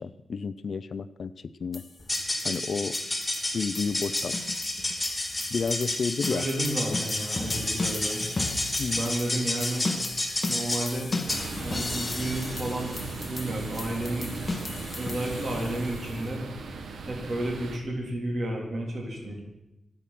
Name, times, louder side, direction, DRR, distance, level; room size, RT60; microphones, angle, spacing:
voice 1, 0.0-1.8 2.4-3.0 3.5-4.4 5.5-6.4 8.8-9.1, left 5 dB, 50° left, 14 dB, 0.6 m, -31 dB
sound 1, 1.7-16.3, left 3 dB, 25° left, 1.2 m, -37 dB
sound 2, 2.0-11.5, left 1 dB, 5° left, 3.2 m, -31 dB
voice 2, 6.3-8.3 9.0-9.9 10.5-11.1 11.6-13.0 13.3-14.3 15.0-16.4 17.1-19.4, right 1 dB, 45° right, 0 dB, 3.6 m, -31 dB
sound 3, 11.3-17.8, right 4 dB, 70° right, 1.5 m, -37 dB
25.5 x 8.7 x 6.0 m, 0.93 s
wide cardioid pair, 175°, 0 cm